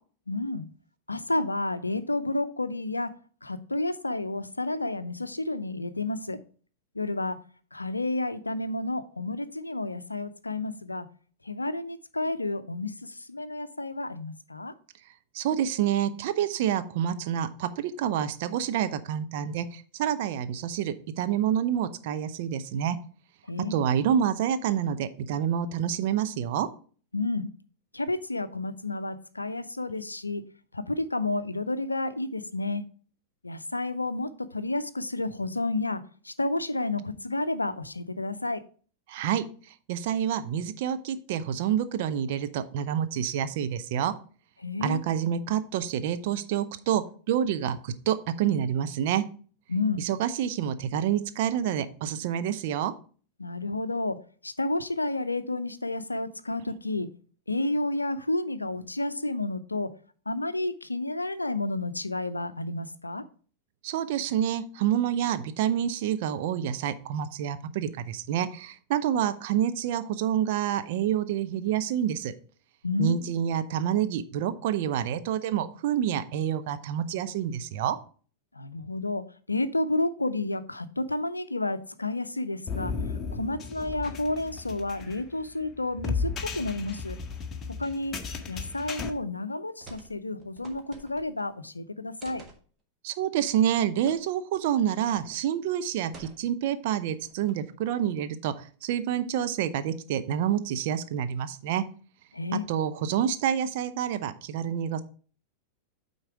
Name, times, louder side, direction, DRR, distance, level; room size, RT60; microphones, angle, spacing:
voice 1, 0.3-0.7 1.1-3.1 3.4-6.4 6.9-7.4 7.7-11.1 11.4-14.7 23.5-23.8 27.1-27.5 27.9-30.4 30.7-32.8 33.4-38.6 44.6-45.0 49.7-50.0 53.4-54.2 54.4-57.1 57.5-59.9 60.3-63.2 72.8-73.2 78.5-82.9 83.3-87.2 87.8-88.2 88.5-92.4 102.3-102.6, left 2 dB, 80° left, 13 dB, 0.5 m, -31 dB
voice 2, 15.3-23.0 23.7-26.7 39.1-39.4 39.9-44.1 44.8-49.2 50.0-52.9 63.8-72.3 73.0-78.0 93.0-101.8 102.7-105.0, right 9 dB, 50° right, 11 dB, 0.6 m, -28 dB
sound 1, 82.7-89.1, left 4 dB, 25° left, 0.9 m, -34 dB
sound 2, 89.8-90.1 90.4-91.5 92.2-92.6 94.1-94.2 94.5-94.6 95.2-95.4 96.1-96.7 97.2-97.7, right 3 dB, 25° right, 1.5 m, -49 dB
8.9 x 4.0 x 4.7 m, 0.41 s
figure-of-eight pair, 90°, 0 cm